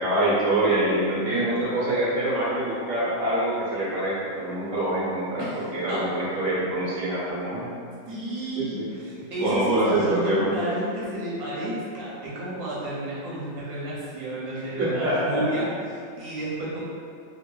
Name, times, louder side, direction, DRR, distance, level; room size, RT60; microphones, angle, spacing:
voice 1, 0.0-7.7 8.6-8.9 9.4-10.5 14.8-15.4, right 1 dB, 65° right, -9 dB, 1.1 m, -25 dB
voice 2, 5.4-6.1 8.1-16.8, right 1 dB, 85° right, -8 dB, 1.2 m, -31 dB
3.0 x 2.1 x 2.2 m, 2.4 s
omnidirectional pair, 1.5 m